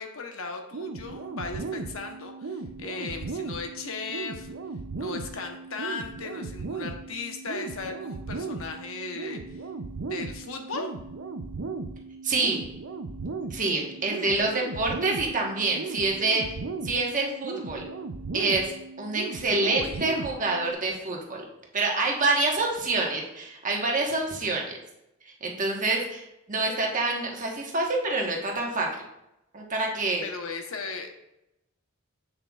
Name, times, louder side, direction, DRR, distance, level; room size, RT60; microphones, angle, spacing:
voice 1, 0.0-4.5 5.0-9.6 10.1-10.9 19.6-20.0 30.2-31.1, left 4 dB, 65° left, 4 dB, 0.9 m, -37 dB
sound 1, 0.7-20.7, right 3 dB, 60° right, 0.5 m, -37 dB
voice 2, 12.2-12.6 13.5-16.5 16.8-17.8 18.3-18.7 19.0-21.4 21.7-24.8 25.4-28.9 29.5-30.2, right 3 dB, 35° right, -1 dB, 1.2 m, -27 dB
7.9 x 7.3 x 2.4 m, 0.87 s
head